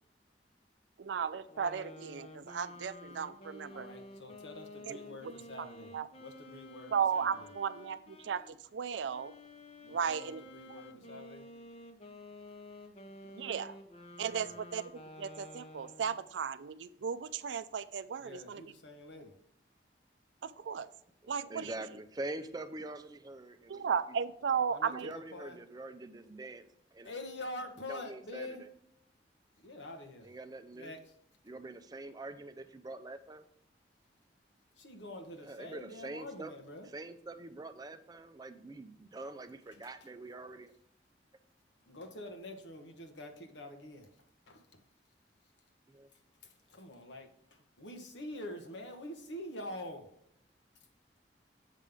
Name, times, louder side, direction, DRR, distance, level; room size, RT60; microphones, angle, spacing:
voice 1, 1.0-3.9 4.9-5.0 5.6-5.7 5.9-6.1 6.9-9.3 9.9-10.4 10.7-10.8 13.3-13.7 14.2-14.8 15.2-18.6 20.4-20.9 21.3-21.7 23.7-25.1, right 7 dB, 90° right, 14 dB, 0.4 m, -35 dB
sound 1, 1.5-8.5 9.1-16.3, left 1 dB, 35° left, 0.8 m, -51 dB
voice 2, 3.7-7.4 9.8-11.5 14.3-14.6 18.2-19.4 21.6-21.7 24.7-25.6 27.0-28.6 29.6-30.3 30.7-31.1 34.8-36.9 39.8-39.9 41.8-44.1 44.5-44.8 46.8-50.1, left 1 dB, 90° left, 5 dB, 1.2 m, -46 dB
voice 3, 21.5-23.9 24.9-26.6 26.9-27.1 27.9-28.6 30.2-30.9 31.5-33.5 35.4-36.5 36.9-40.7 45.9-46.1, right 2 dB, 20° right, 9 dB, 0.4 m, -44 dB
7.5 x 5.2 x 3.5 m, 0.72 s
head